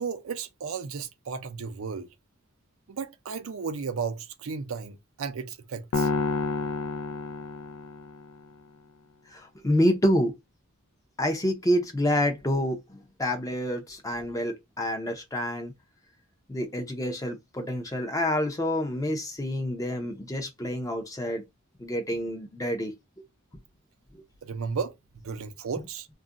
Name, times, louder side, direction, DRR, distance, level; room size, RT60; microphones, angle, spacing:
voice 1, 0.0-2.1 2.9-6.1 24.4-25.0 25.2-26.1, right 5 dB, 70° right, 0.5 m, -34 dB
sound 1, 5.9-8.3, left 4 dB, 85° left, 0.4 m, -29 dB
voice 2, 9.3-10.3 11.2-15.7 16.5-21.4 21.8-22.9 24.1-24.2, equal, 15° left, 0.5 m, -28 dB
2.4 x 2.1 x 3.6 m
head